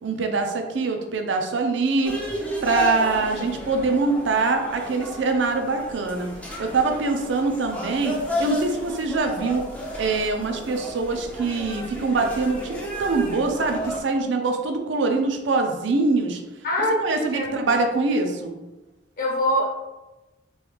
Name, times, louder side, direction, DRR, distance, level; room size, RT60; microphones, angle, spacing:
voice 1, 0.0-2.2 2.6-6.3 6.6-9.7 10.0-16.4 17.0-18.5, right 3 dB, 65° right, 4 dB, 0.5 m, -24 dB
sound 1, 2.0-14.0, equal, 5° left, 0.5 m, -32 dB
voice 2, 16.6-17.7 19.2-19.7, left 1 dB, 45° left, -3 dB, 1.0 m, -24 dB
3.0 x 2.3 x 3.3 m, 1.1 s
head